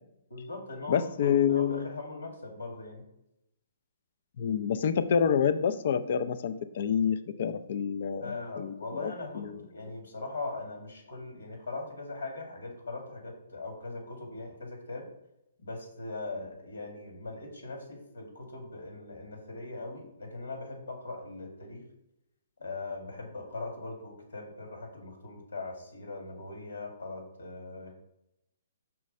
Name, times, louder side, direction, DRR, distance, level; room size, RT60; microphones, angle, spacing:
voice 1, 0.3-3.0 8.2-15.1 15.6-21.8 22.6-27.9, left 3 dB, 85° left, 2 dB, 2.0 m, -40 dB
voice 2, 0.9-1.9 4.4-9.6, left 7 dB, 55° left, 12 dB, 0.4 m, -28 dB
5.7 x 3.2 x 5.2 m, 0.85 s
hypercardioid pair, 135°, 0 cm